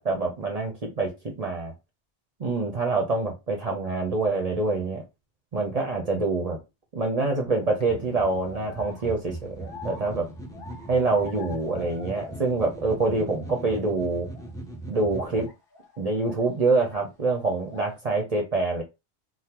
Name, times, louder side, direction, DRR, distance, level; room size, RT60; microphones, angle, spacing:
voice 1, 0.0-1.7 2.4-5.0 5.5-6.6 6.9-10.3 10.9-14.3 14.9-15.5 16.0-18.8, right 3 dB, 40° right, 2 dB, 0.6 m, -26 dB
sound 1, 7.5-7.8 8.4-12.8 13.1-13.8 14.3-14.5 15.3-16.9 17.2-18.0, left 3 dB, 55° left, 1.2 m, -46 dB
sound 2, 7.9-15.5, right 1 dB, 5° left, 0.3 m, -40 dB
3.6 x 2.1 x 2.9 m, 0.24 s
omnidirectional pair, 1.2 m